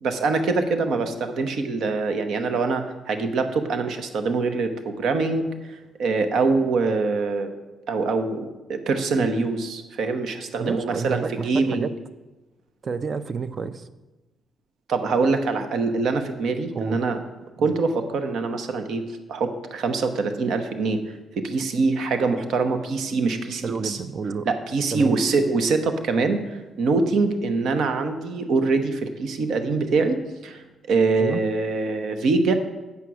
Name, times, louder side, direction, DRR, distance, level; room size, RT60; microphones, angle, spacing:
voice 1, 0.0-7.5 7.9-11.9 14.9-17.2 17.6-21.0 21.4-24.0 24.4-32.5, right 3 dB, 70° right, 7 dB, 0.9 m, -24 dB
voice 2, 10.6-11.9 12.8-13.8 16.7-17.0 17.6-17.7 23.6-24.5 24.9-25.2 31.2-31.4, right 5 dB, 45° right, 13 dB, 0.5 m, -29 dB
8.4 x 5.7 x 6.2 m, 1.1 s
cardioid pair, 90°, 0 cm